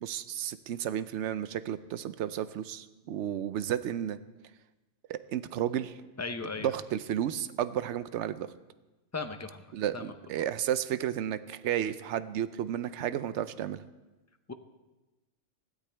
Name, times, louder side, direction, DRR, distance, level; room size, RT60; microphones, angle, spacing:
voice 1, 0.0-4.2 5.1-5.9 6.6-8.5 9.7-13.8, right 10 dB, 70° right, 14 dB, 0.9 m, -32 dB
voice 2, 6.2-6.7 9.1-9.6 9.9-10.1 14.5-14.6, left 4 dB, 20° left, 8 dB, 0.5 m, -36 dB
20.5 x 13.5 x 3.4 m, 1.1 s
omnidirectional pair, 1.3 m